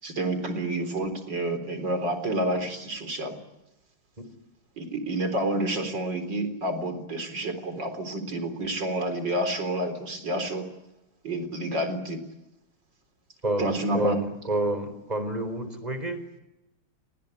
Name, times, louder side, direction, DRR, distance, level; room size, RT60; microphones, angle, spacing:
voice 1, 0.0-3.4 4.8-10.6 11.2-12.2 13.6-14.2, right 1 dB, 60° right, 8 dB, 4.6 m, -29 dB
voice 2, 13.4-16.2, right 1 dB, 20° right, 10 dB, 4.1 m, -29 dB
30.0 x 20.0 x 9.9 m, 0.94 s
omnidirectional pair, 2.2 m